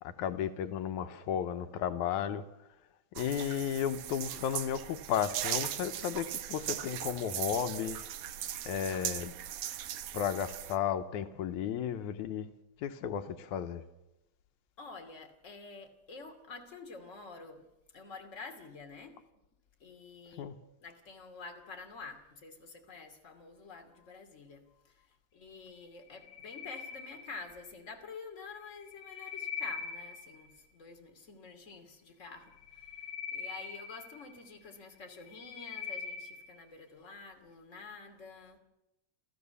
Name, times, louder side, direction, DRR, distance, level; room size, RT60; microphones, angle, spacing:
voice 1, 0.0-2.4 3.2-8.0 8.7-9.3 10.1-12.5 12.8-13.8 20.4-20.6, left 9 dB, 90° left, 2.4 m, -34 dB
sound 1, 3.2-10.8, right 11 dB, 80° right, 2.4 m, -39 dB
voice 2, 14.8-17.7 17.9-19.2 19.8-38.6, left 4 dB, 25° left, 2.8 m, -49 dB
sound 2, 26.0-27.7 28.7-30.5 32.5-34.6 35.1-36.6, left 6 dB, 60° left, 4.1 m, -42 dB
29.5 x 14.0 x 7.0 m
omnidirectional pair, 3.3 m